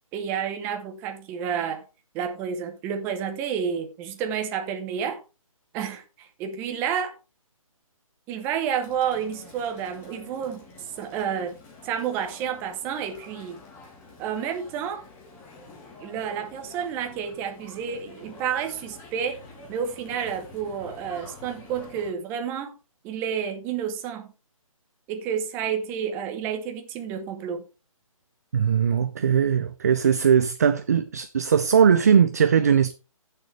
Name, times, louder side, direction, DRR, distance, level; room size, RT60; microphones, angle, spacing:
voice 1, 0.1-1.8 2.1-5.2 5.7-7.1 8.3-10.7 11.0-11.6 11.8-13.6 14.2-15.0 16.0-19.4 19.7-22.8 23.0-24.3 25.1-27.6, right 8 dB, 10° right, 0.9 m, -30 dB
sound 1, 8.8-22.1, left 3 dB, 10° left, 1.5 m, -48 dB
voice 2, 28.5-32.9, right 7 dB, 30° right, 0.4 m, -20 dB
15.0 x 6.6 x 3.3 m
hypercardioid pair, 165°, 18 cm